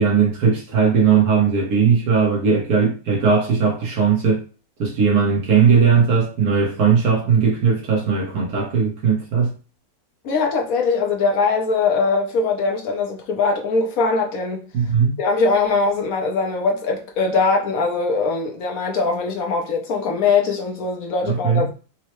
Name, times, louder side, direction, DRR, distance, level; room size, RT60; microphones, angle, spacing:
voice 1, 0.0-4.4 4.8-9.5 14.7-15.2 21.3-21.7, right 6 dB, 85° right, 1.7 m, -18 dB
voice 2, 10.2-14.6 15.2-21.7, left 4 dB, 70° left, 1.2 m, -21 dB
4.5 x 2.1 x 3.0 m
omnidirectional pair, 1.6 m